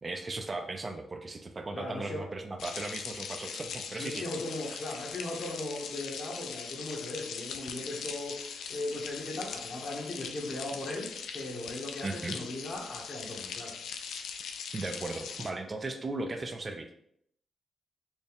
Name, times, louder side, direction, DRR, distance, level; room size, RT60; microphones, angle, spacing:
voice 1, 0.0-4.3 4.7-4.8 12.0-12.4 14.7-16.9, right 2 dB, 35° right, 5 dB, 0.5 m, -37 dB
voice 2, 1.8-2.2 4.0-13.7, left 2 dB, 60° left, -2 dB, 1.4 m, -38 dB
sound 1, 2.6-15.5, left 6 dB, 85° left, 0.3 m, -41 dB
4.3 x 2.3 x 3.5 m, 0.71 s
cardioid pair, 60°, 0 cm